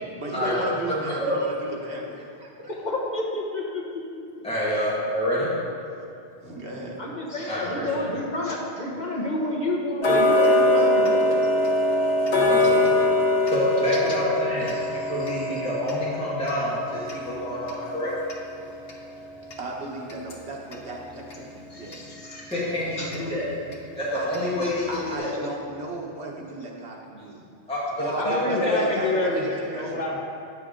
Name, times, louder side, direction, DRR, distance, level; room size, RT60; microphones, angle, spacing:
voice 1, 0.2-2.7 6.4-7.0 12.0-12.9 17.3-17.4 19.6-22.1 24.1-27.4 28.0-30.0, right 2 dB, 85° right, -2 dB, 1.4 m, -35 dB
voice 2, 0.9-1.4 4.4-5.5 7.5-8.1 10.7-10.8 12.5-12.8 13.5-18.1 22.5-23.5 24.0-25.3 27.7-27.8 28.2-28.8 29.1-29.2, equal, 5° left, -9 dB, 1.8 m, -27 dB
voice 3, 2.7-4.0 7.0-11.5 14.7-14.9 15.2-15.3 21.7-22.4 23.0-23.1 28.2-30.2, left 1 dB, 45° left, -3 dB, 1.3 m, -29 dB
Tick-tock, 10.0-20.9 21.3-21.4 21.9-22.0 22.5-22.6 23.1-23.2 23.7-23.8 24.3-24.4 24.9-25.0, left 1 dB, 70° left, 1.2 m, -24 dB
9.4 x 6.8 x 3.7 m, 2.5 s
omnidirectional pair, 1.1 m